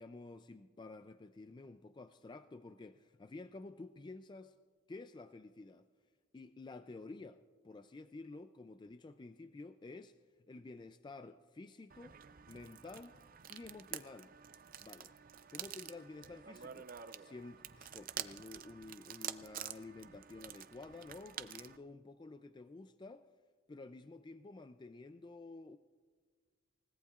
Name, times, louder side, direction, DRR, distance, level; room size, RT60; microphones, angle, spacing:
voice 1, 0.0-4.5 4.9-5.9 6.3-10.2 10.5-12.2 12.5-13.2 13.5-14.3 14.8-15.1 15.5-16.9 17.2-23.3 23.7-25.8, left 3 dB, 25° left, 0.3 m, -51 dB
sound 1, 11.9-21.8, right 9 dB, 45° right, 0.5 m, -48 dB
28.5 x 17.5 x 2.4 m
head